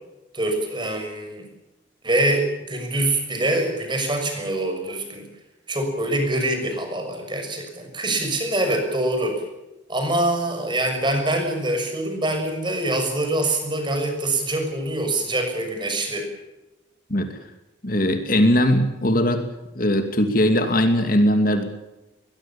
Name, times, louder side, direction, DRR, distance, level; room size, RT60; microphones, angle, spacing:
voice 1, 0.3-1.4 2.0-5.2 5.7-9.4 9.9-16.3, right 1 dB, 25° right, 5 dB, 6.4 m, -24 dB
voice 2, 17.8-19.5 19.7-21.6, equal, 45° left, 7 dB, 2.6 m, -20 dB
23.0 x 21.0 x 7.2 m, 1.0 s
head